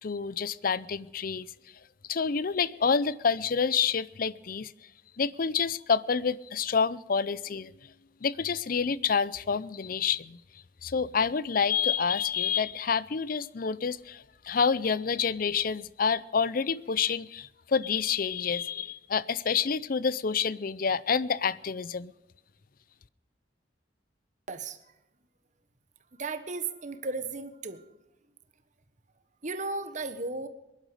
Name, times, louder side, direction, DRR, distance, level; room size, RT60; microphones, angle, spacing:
voice 1, 0.0-1.5 2.1-4.7 5.2-7.7 8.2-10.4 10.8-22.1, left 6 dB, 50° left, 19 dB, 0.5 m, -28 dB
voice 2, 24.5-24.8 26.2-27.8 29.4-30.5, right 3 dB, 45° right, 10 dB, 1.4 m, -35 dB
21.5 x 11.5 x 4.9 m, 0.94 s
head